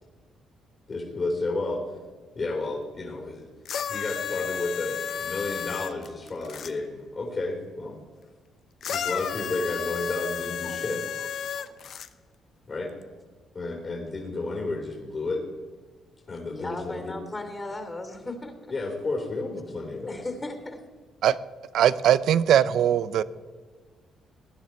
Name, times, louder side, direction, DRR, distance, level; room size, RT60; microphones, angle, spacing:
voice 1, 0.9-1.8 2.4-3.5 3.9-8.0 8.9-11.0 12.7-12.9 13.5-15.4 16.3-17.1 18.7-20.2, left 3 dB, 40° left, 0 dB, 3.4 m, -31 dB
sound 1, 3.6-6.7 8.8-12.1 13.0-13.1, left 8 dB, 65° left, 0.8 m, -32 dB
voice 2, 11.2-11.7 16.5-18.6 20.1-20.8, left 2 dB, 20° left, 6 dB, 2.8 m, -37 dB
voice 3, 21.7-23.2, right 10 dB, 75° right, 17 dB, 0.6 m, -20 dB
19.5 x 10.5 x 4.5 m, 1.4 s
cardioid pair, 90°, 0 cm